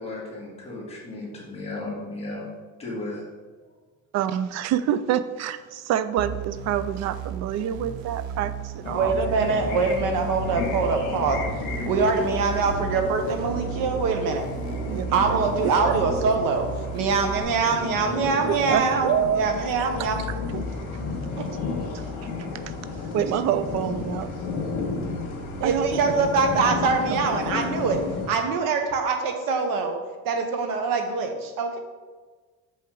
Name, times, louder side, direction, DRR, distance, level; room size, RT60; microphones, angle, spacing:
voice 1, 0.0-2.5 2.8-3.2, left 2 dB, 15° left, -4 dB, 1.6 m, -35 dB
voice 2, 4.1-9.1 14.9-15.4 15.6-16.0 18.5-19.4 19.8-19.9 20.5-20.6 21.9-22.0 23.1-24.3 25.6-26.0 27.1-27.2, right 10 dB, 50° right, 13 dB, 0.4 m, -27 dB
sound 1, 6.2-17.4, right 7 dB, 90° right, 0.8 m, -35 dB
sound 2, 8.8-28.3, left 3 dB, 60° left, 2.0 m, -32 dB
voice 3, 8.9-11.4 11.9-14.5 15.1-20.2 21.4-21.5 25.6-28.0 28.3-30.0 30.2-31.8, right 4 dB, 65° right, 5 dB, 1.1 m, -24 dB
7.0 x 5.5 x 3.9 m, 1.4 s
cardioid pair, 160°, 36 cm